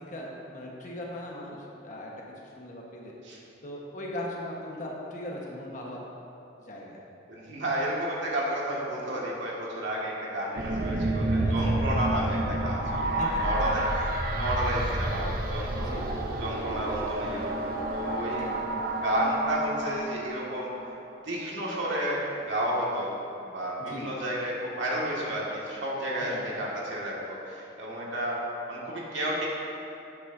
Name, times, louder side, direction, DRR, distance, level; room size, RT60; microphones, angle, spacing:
voice 1, 0.1-2.1 2.4-3.1 3.6-6.0 6.6-7.0 11.3-11.8 13.2-13.8 15.8-16.1 18.3-18.6 23.8-24.1 26.2-26.5, left 1 dB, 40° left, -3 dB, 1.3 m, -39 dB
voice 2, 7.3-16.0 16.4-20.7 21.2-23.1 23.4-28.4 28.7-29.5, right 1 dB, 80° right, -5 dB, 2.0 m, -31 dB
sound 1, 10.6-20.9, right 1 dB, 50° right, 0.8 m, -30 dB
12.0 x 8.4 x 2.7 m, 2.9 s
head